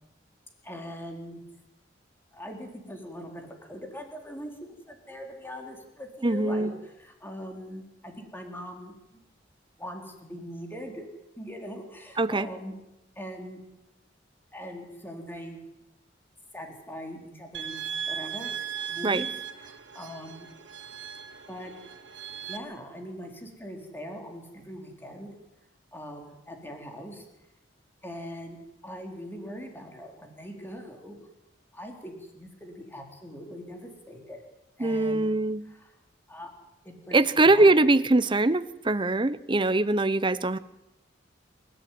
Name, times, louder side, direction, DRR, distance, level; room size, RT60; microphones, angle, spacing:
voice 1, 0.6-1.4 2.3-9.2 9.8-11.1 11.4-12.7 13.2-13.6 14.5-15.6 16.5-17.8 18.1-19.3 19.6-20.5 21.5-21.7 22.4-25.3 25.9-27.2 28.0-31.2 31.7-34.4 34.8-35.3 35.6-35.9 36.3-36.5 36.8-37.8, equal, 10° left, 2 dB, 4.1 m, -41 dB
voice 2, 6.2-6.7 12.2-12.5 19.0-19.2 34.8-35.6 37.1-40.6, right 2 dB, 25° right, 15 dB, 0.8 m, -22 dB
sound 1, 17.5-22.6, right 8 dB, 85° right, 2.5 m, -37 dB
27.5 x 14.5 x 9.4 m, 0.92 s
head